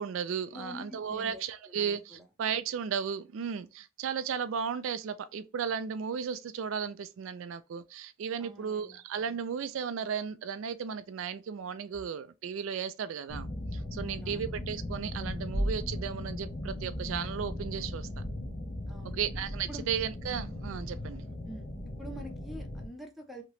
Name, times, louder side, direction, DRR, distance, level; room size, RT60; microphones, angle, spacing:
voice 1, 0.0-18.1 19.2-21.2, right 7 dB, 70° right, 0.3 m, -35 dB
voice 2, 0.5-2.3 8.4-9.0 14.0-14.6 18.9-19.3 19.7-19.9 21.4-21.7 22.0-23.4, equal, ahead, 0.7 m, -46 dB
sound 1, 13.3-22.9, left 1 dB, 50° left, 0.9 m, -37 dB
2.9 x 2.8 x 3.0 m
head